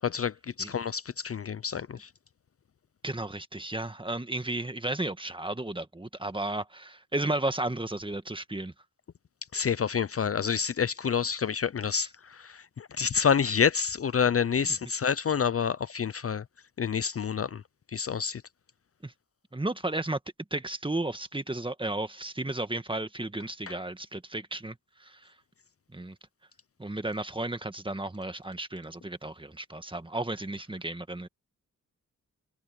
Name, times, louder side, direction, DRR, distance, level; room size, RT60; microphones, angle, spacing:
voice 1, 0.0-2.1 9.5-16.4 16.8-17.6 17.9-18.4 23.7-23.8, left 7 dB, 45° left, 0.6 m, -28 dB
voice 2, 3.0-8.7 11.9-12.1 19.0-19.1 19.5-20.2 20.5-24.8 25.0-25.3 25.9-26.2 26.8-31.3, right 2 dB, 15° right, 1.7 m, -33 dB
cardioid pair, 60°, 32 cm